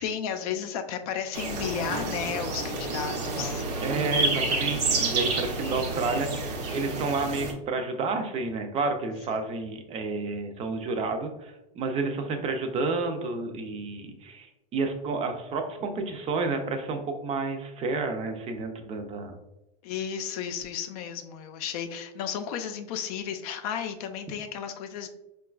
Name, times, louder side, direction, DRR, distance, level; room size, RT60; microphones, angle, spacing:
voice 1, 0.0-3.6 19.8-25.1, left 8 dB, 65° left, 7 dB, 0.4 m, -33 dB
sound 1, 1.3-7.5, right 3 dB, 75° right, 0.8 m, -29 dB
voice 2, 3.8-19.4, right 3 dB, 30° right, 5 dB, 0.5 m, -30 dB
3.6 x 2.3 x 2.3 m, 0.91 s
supercardioid pair, 115°, 20 cm